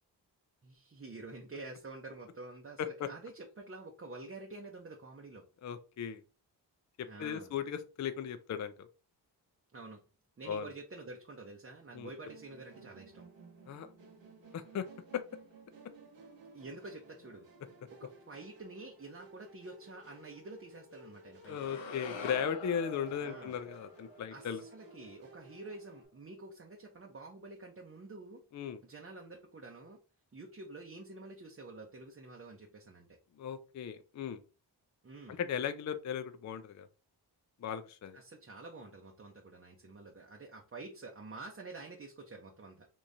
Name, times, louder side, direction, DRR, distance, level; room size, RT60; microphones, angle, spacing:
voice 1, 0.6-5.4 7.0-7.6 9.7-10.0 10.4-13.2 16.5-17.5 18.0-21.6 23.2-23.5 24.3-28.4 28.8-30.0 30.3-33.2 35.0-35.4 38.1-42.9, right 3 dB, 30° right, 0 dB, 0.7 m, -48 dB
voice 2, 2.8-3.1 5.6-6.2 7.0-8.9 10.5-10.7 11.9-12.1 13.7-13.9 14.5-14.9 15.1-15.2 21.5-24.6 28.5-28.8 33.4-34.4 35.3-36.9 37.6-38.2, left 8 dB, 40° left, 10 dB, 0.4 m, -37 dB
Musical instrument, 12.3-26.1, right 2 dB, 85° right, 1.1 m, -56 dB
sound 1, 21.4-25.7, left 3 dB, 85° left, 0.7 m, -46 dB
3.6 x 2.9 x 2.6 m, 0.34 s
cardioid pair, 55°, 43 cm